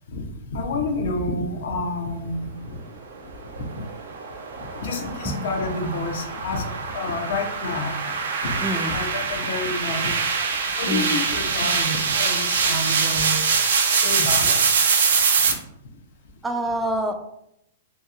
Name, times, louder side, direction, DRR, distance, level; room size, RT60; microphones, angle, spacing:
voice 1, 0.1-2.6 3.6-3.8 4.6-8.6 8.9-10.2 10.8-13.4 13.9-14.6 15.4-15.6, left 2 dB, 70° left, 4 dB, 0.6 m, -29 dB
sound 1, 3.5-15.5, right 5 dB, 85° right, 0.5 m, -24 dB
voice 2, 8.6-9.0 10.9-11.2 16.4-17.1, right 1 dB, 5° right, 4 dB, 0.3 m, -26 dB
2.8 x 2.7 x 2.4 m, 0.78 s
hypercardioid pair, 150°, 0 cm